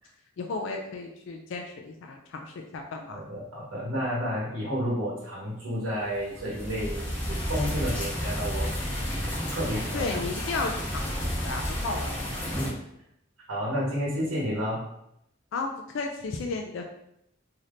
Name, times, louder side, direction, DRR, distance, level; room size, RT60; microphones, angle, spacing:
voice 1, 0.4-3.2 9.9-12.2 15.5-15.7 15.9-16.9, left 3 dB, 60° left, 3 dB, 0.3 m, -33 dB
voice 2, 3.1-8.7 9.5-10.0 10.5-10.6 13.5-14.8, equal, 75° right, -6 dB, 1.0 m, -31 dB
sound 1, 6.2-12.7, equal, 10° left, 0.6 m, -31 dB
2.7 x 2.5 x 3.4 m, 0.79 s
head